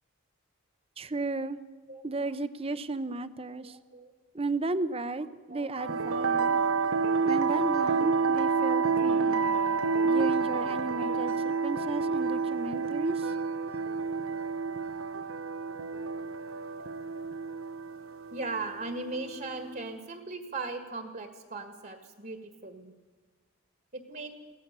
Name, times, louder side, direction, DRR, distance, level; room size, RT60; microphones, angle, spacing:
voice 1, 1.0-1.6 2.0-3.8 4.3-6.6 7.2-9.4 10.0-13.3, right 2 dB, 25° right, 13 dB, 0.8 m, -34 dB
voice 2, 3.6-4.1 5.5-5.7 11.1-11.2 11.4-11.6 13.1-13.3 18.3-22.9 23.9-24.3, right 3 dB, 45° right, 6 dB, 1.9 m, -38 dB
sound 1, 5.7-19.8, right 4 dB, 75° right, 0.9 m, -29 dB
23.5 x 16.5 x 6.8 m, 1.4 s
head